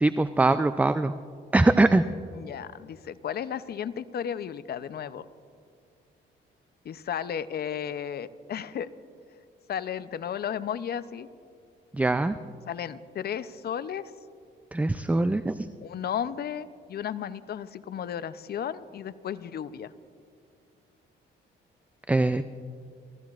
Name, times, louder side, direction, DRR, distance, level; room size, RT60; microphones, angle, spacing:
voice 1, 0.0-1.1 1.5-2.0 12.0-12.3 14.7-15.5 22.1-22.4, right 2 dB, 5° right, 11 dB, 0.3 m, -22 dB
voice 2, 2.3-5.3 6.8-8.9 9.7-11.3 12.7-14.0 15.8-19.9, left 9 dB, 55° left, 14 dB, 0.6 m, -34 dB
29.5 x 14.0 x 2.4 m, 2.2 s
cardioid pair, 90°, 20 cm